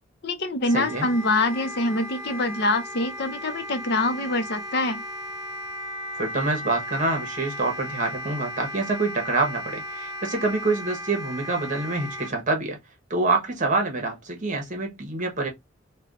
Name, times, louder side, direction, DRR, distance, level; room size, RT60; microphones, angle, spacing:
voice 1, 0.2-5.0, left 2 dB, 60° left, 0.7 m, -25 dB
Wind instrument woodwind instrument, 0.6-12.3, equal, 35° left, 1.0 m, -36 dB
voice 2, 0.7-1.1 6.1-12.8 13.1-15.5, right 3 dB, 40° right, 1.1 m, -26 dB
3.3 x 2.3 x 3.7 m
head